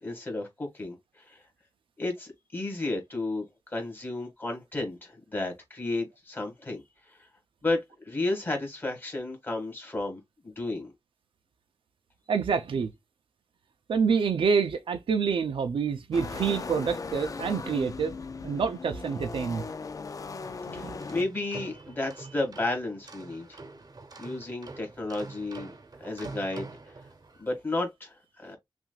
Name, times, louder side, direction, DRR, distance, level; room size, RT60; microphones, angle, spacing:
voice 1, 0.0-1.4 2.0-7.3 7.6-10.9 20.7-23.6 24.2-25.7 26.0-26.9 27.4-28.6, left 2 dB, 25° left, 2.0 m, -33 dB
voice 2, 12.3-12.9 13.9-18.2 18.4-19.6 20.7-21.0, right 6 dB, 90° right, 0.6 m, -27 dB
sound 1, 16.1-21.2, left 4 dB, 40° left, 0.5 m, -38 dB
sound 2, 21.0-27.5, right 3 dB, 50° right, 0.9 m, -45 dB
6.0 x 2.6 x 2.4 m
wide cardioid pair, 145°, 9 cm